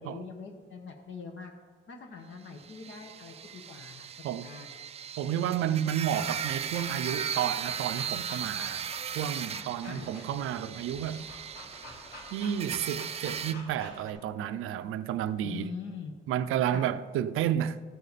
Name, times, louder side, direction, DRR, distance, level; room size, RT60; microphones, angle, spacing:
voice 1, 0.0-1.5 1.9-4.8 9.8-10.1 15.4-16.2 16.7-16.9, left 5 dB, 65° left, 1.3 m, -43 dB
sound 1, 2.6-13.5, right 8 dB, 30° right, 0.3 m, -37 dB
voice 2, 5.2-11.3 12.3-15.7 16.3-17.8, right 10 dB, 90° right, 0.5 m, -31 dB
sound 2, 6.1-14.1, left 1 dB, 45° left, 3.1 m, -48 dB
13.5 x 9.2 x 4.1 m
cardioid pair, 130°, 21 cm